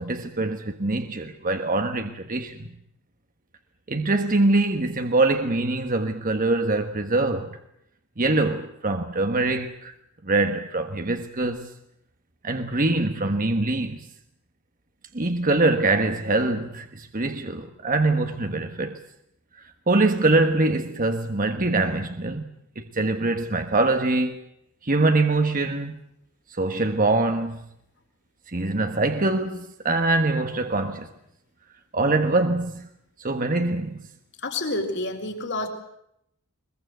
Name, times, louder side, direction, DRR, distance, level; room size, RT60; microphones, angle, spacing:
voice 1, 0.0-2.7 3.9-7.6 8.2-9.9 10.2-11.7 12.4-14.1 15.1-19.0 19.6-22.5 22.7-24.4 24.8-26.0 26.5-27.6 28.5-31.1 31.9-32.9 33.2-34.0, right 2 dB, 40° right, 1.4 m, -24 dB
voice 2, 34.4-35.7, left 2 dB, 50° left, 4.3 m, -28 dB
22.5 x 22.0 x 7.9 m
head